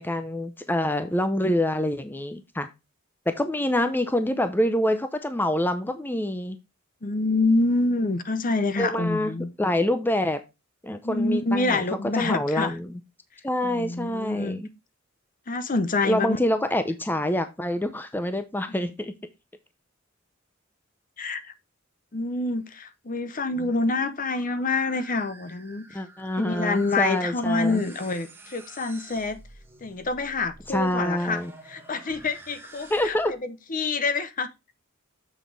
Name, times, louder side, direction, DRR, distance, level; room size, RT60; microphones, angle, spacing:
voice 1, 0.0-2.7 3.3-6.6 8.8-9.3 9.6-10.4 10.8-11.8 12.1-12.9 13.4-14.7 16.0-19.1 25.9-27.8 30.7-31.5 32.9-33.3, left 1 dB, 10° left, 0.6 m, -26 dB
voice 2, 7.0-9.5 11.0-12.7 13.6-14.6 15.5-16.4 21.2-21.4 22.1-25.9 26.4-29.4 29.8-31.4 31.7-33.2 33.4-34.5, left 3 dB, 40° left, 0.8 m, -26 dB
sound 1, 23.3-33.4, right 2 dB, 10° right, 1.3 m, -48 dB
7.3 x 6.2 x 3.4 m
head